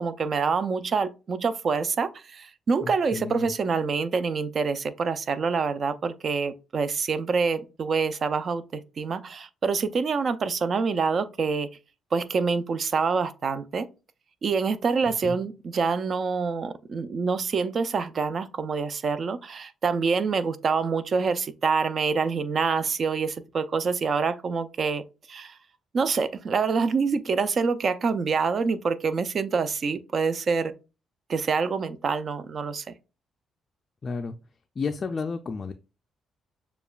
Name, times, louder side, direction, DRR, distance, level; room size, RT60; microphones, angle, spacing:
voice 1, 0.0-11.7 12.1-13.9 14.4-25.0 25.3-25.6 25.9-30.7 31.3-32.8, right 5 dB, 50° right, 0.4 m, -26 dB
voice 2, 2.8-3.5 15.2-15.4 34.0-34.4 34.8-35.7, left 4 dB, 40° left, 0.3 m, -32 dB
6.8 x 2.3 x 2.3 m
cardioid pair, 90°, 0 cm